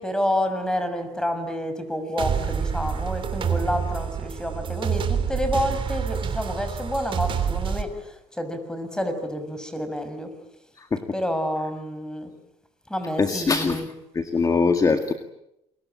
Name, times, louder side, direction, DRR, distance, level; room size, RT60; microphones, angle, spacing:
voice 1, 0.0-10.3 11.1-12.3 12.9-13.9, equal, 5° left, 9 dB, 6.3 m, -29 dB
sound 1, 2.2-7.8, right 7 dB, 45° right, 3.6 m, -27 dB
voice 2, 13.2-13.8 14.1-15.1, left 4 dB, 30° left, 7 dB, 2.0 m, -22 dB
28.0 x 23.5 x 8.8 m, 0.81 s
supercardioid pair, 95°, 12 cm